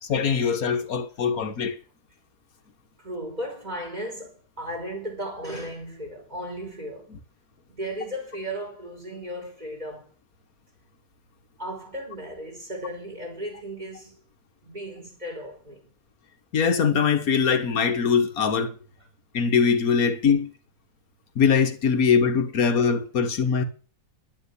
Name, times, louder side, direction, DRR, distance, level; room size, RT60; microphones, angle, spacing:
voice 1, 0.0-1.8 16.5-18.8 19.3-20.5 21.3-23.6, left 6 dB, 55° left, 1.8 m, -22 dB
voice 2, 3.0-7.1 7.7-10.1 11.6-14.2 14.6-15.9, equal, 20° right, 5.2 m, -35 dB
11.5 x 8.5 x 8.3 m
omnidirectional pair, 1.9 m